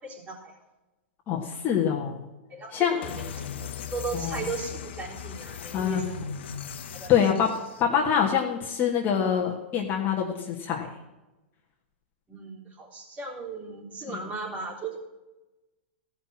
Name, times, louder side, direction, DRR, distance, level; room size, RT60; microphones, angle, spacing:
voice 1, 0.0-0.5 2.5-3.5 3.8-6.3 6.9-7.3 12.3-15.0, right 4 dB, 25° right, -1 dB, 3.6 m, -37 dB
voice 2, 1.3-2.3 2.7-3.0 4.2-4.5 5.7-6.0 7.1-10.9, left 8 dB, 30° left, -2 dB, 1.6 m, -25 dB
sound 1, 3.0-7.8, left 7 dB, 70° left, 1.0 m, -38 dB
15.0 x 5.9 x 7.5 m, 1.1 s
hypercardioid pair, 120°, 6 cm